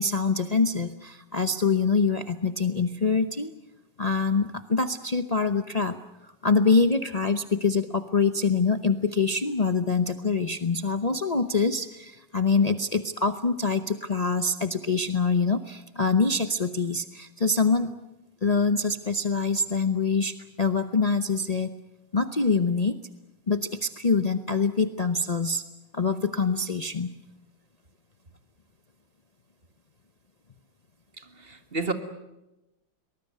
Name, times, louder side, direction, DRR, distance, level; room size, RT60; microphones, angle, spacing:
voice 1, 0.0-3.5 4.0-5.9 6.2-17.9 18.4-21.7 22.1-23.0 23.5-25.6 25.9-27.1, left 4 dB, 70° left, 0.3 m, -25 dB
voice 2, 31.2-31.9, right 3 dB, 30° right, 1.9 m, -31 dB
23.5 x 20.5 x 9.4 m
omnidirectional pair, 2.2 m